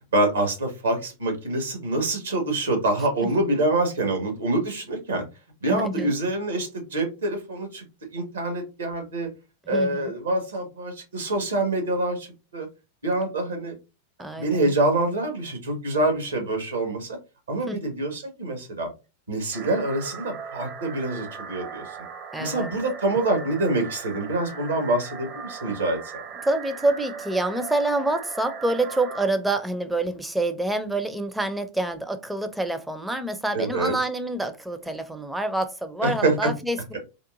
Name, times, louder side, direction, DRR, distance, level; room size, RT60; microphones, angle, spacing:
voice 1, 0.1-5.2 5.6-7.8 8.1-9.3 9.7-12.3 12.5-12.7 13.0-13.7 14.4-17.2 17.5-18.9 19.3-21.8 22.4-26.2 33.5-33.9 36.0-36.5, right 2 dB, 70° right, 4 dB, 1.3 m, -26 dB
voice 2, 5.7-6.1 9.7-10.1 14.2-14.7 17.7-17.8 22.3-22.7 26.4-37.0, right 2 dB, 5° right, 9 dB, 0.5 m, -27 dB
sound 1, 19.5-29.3, right 6 dB, 35° right, 0.7 m, -39 dB
3.6 x 2.5 x 2.5 m, 0.29 s
figure-of-eight pair, 90°, 0 cm